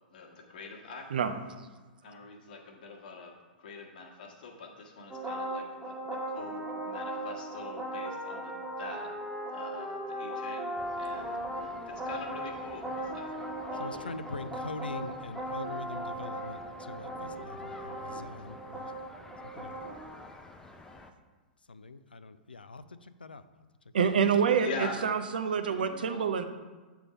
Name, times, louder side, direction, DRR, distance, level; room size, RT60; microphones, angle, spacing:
voice 1, 0.1-1.1 2.0-9.1 9.5-11.4 11.9-13.3 13.7-14.1 24.6-25.3 25.6-26.2, left 4 dB, 65° left, 0 dB, 1.3 m, -44 dB
sound 1, 5.1-20.1, right 1 dB, 10° right, 1.3 m, -38 dB
sound 2, 10.7-21.1, left 2 dB, 10° left, 0.5 m, -51 dB
voice 2, 13.8-18.9 19.4-19.7 21.7-23.4, left 3 dB, 90° left, 13 dB, 0.3 m, -43 dB
voice 3, 23.9-26.4, right 7 dB, 70° right, 8 dB, 0.5 m, -27 dB
8.1 x 3.4 x 5.0 m, 1.3 s
figure-of-eight pair, 105°, 5 cm